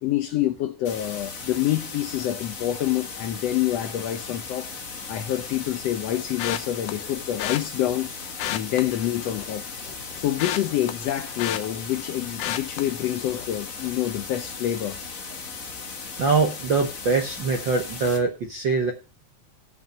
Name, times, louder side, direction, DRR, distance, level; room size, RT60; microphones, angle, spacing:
voice 1, 0.0-4.7 5.1-8.1 8.5-9.6 10.2-15.0, left 12 dB, 70° left, 1.6 m, -27 dB
sound 1, 0.8-18.2, left 4 dB, 45° left, 1.1 m, -37 dB
sound 2, 6.4-6.9 7.4-7.6 8.3-9.5 9.9-12.1 12.4-12.8 13.3-13.5 13.8-13.9, left 12 dB, 90° left, 2.3 m, -31 dB
voice 2, 16.2-18.9, right 4 dB, 60° right, 1.3 m, -23 dB
11.0 x 5.8 x 6.3 m
omnidirectional pair, 3.5 m